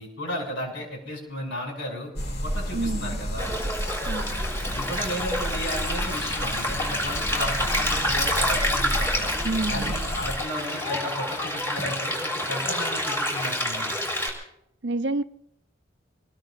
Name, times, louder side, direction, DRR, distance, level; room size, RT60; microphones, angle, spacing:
voice 1, 0.0-2.1 2.4-3.6 4.7-9.3 9.7-13.9, equal, 65° left, 6.7 m, -34 dB
sound 1, 2.2-10.4, equal, 50° left, 1.9 m, -32 dB
voice 2, 2.7-3.2 4.1-4.4 9.4-9.9 14.8-15.2, right 2 dB, 65° right, 0.6 m, -28 dB
Stream, 3.4-14.3, left 1 dB, 15° left, 4.0 m, -28 dB
26.0 x 20.5 x 2.6 m
head